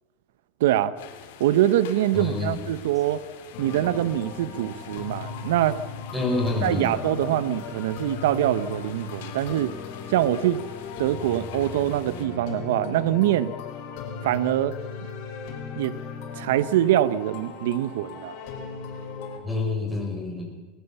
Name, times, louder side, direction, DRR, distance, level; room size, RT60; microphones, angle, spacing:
voice 1, 0.6-0.9 1.4-3.2 3.6-5.8 6.6-9.7 10.1-10.6 11.0-13.5 14.2-14.7 15.8-16.0 16.4-18.4, right 13 dB, 80° right, 16 dB, 0.8 m, -24 dB
sound 1, 1.0-12.3, left 9 dB, 80° left, 3.3 m, -47 dB
voice 2, 2.1-2.6 6.1-6.9 19.4-20.6, left 3 dB, ahead, -1 dB, 4.8 m, -27 dB
sound 2, 3.5-19.4, left 6 dB, 55° left, 5.1 m, -37 dB
20.5 x 19.5 x 7.1 m, 1.4 s
supercardioid pair, 160°, 0 cm